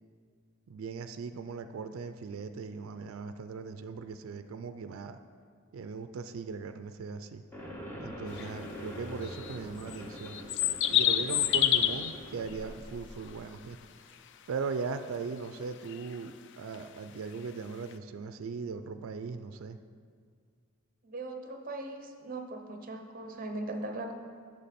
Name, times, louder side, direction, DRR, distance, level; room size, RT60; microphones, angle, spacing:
voice 1, 0.7-5.2 5.7-7.4 8.0-10.4 10.9-13.8 14.5-19.8, right 5 dB, 70° right, 9 dB, 0.4 m, -39 dB
sound 1, 7.5-13.5, equal, 10° left, 1.0 m, -44 dB
sound 2, 8.4-8.5 9.2-12.1 15.9-16.1 16.7-16.8 17.9-18.0, left 11 dB, 55° left, 0.3 m, -27 dB
voice 2, 21.0-24.1, right 2 dB, 40° right, 4 dB, 0.7 m, -39 dB
8.4 x 6.5 x 4.2 m, 2.1 s
head